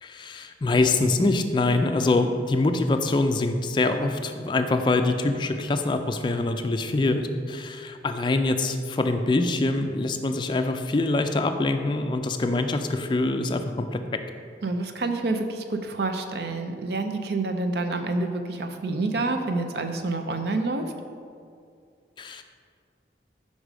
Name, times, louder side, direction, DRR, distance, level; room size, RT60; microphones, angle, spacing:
voice 1, 0.0-14.0 22.2-22.4, left 2 dB, 25° left, 7 dB, 0.3 m, -24 dB
voice 2, 14.6-20.9, right 2 dB, 65° right, 6 dB, 0.5 m, -28 dB
5.4 x 4.8 x 5.0 m, 2.3 s
head